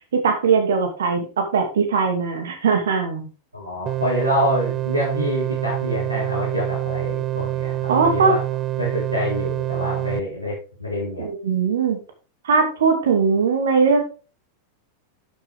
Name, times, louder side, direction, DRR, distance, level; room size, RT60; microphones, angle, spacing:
voice 1, 0.1-3.3 7.9-8.4 11.2-12.0 12.4-14.0, right 5 dB, 65° right, 5 dB, 2.3 m, -20 dB
voice 2, 3.5-8.4 8.8-11.2, left 1 dB, 85° right, -5 dB, 4.0 m, -26 dB
sound 1, 3.9-10.2, right 14 dB, 30° right, 0.4 m, -26 dB
12.0 x 7.1 x 3.5 m, 0.35 s
figure-of-eight pair, 90°, 0 cm